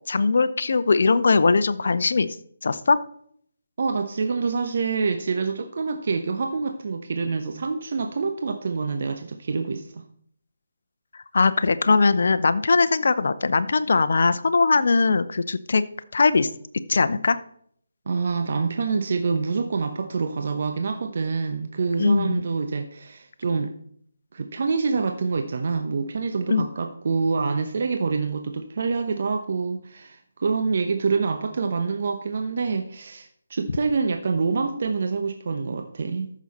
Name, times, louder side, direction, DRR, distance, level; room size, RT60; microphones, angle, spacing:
voice 1, 0.1-2.3 2.6-3.0 11.3-15.8 16.1-16.5 16.9-17.4 22.0-22.4 26.5-26.7, left 4 dB, 60° left, 12 dB, 0.7 m, -20 dB
voice 2, 3.8-10.0 18.1-23.7 24.3-36.3, right 4 dB, 50° right, 6 dB, 0.9 m, -26 dB
14.0 x 6.2 x 4.2 m, 0.65 s
figure-of-eight pair, 150°, 0 cm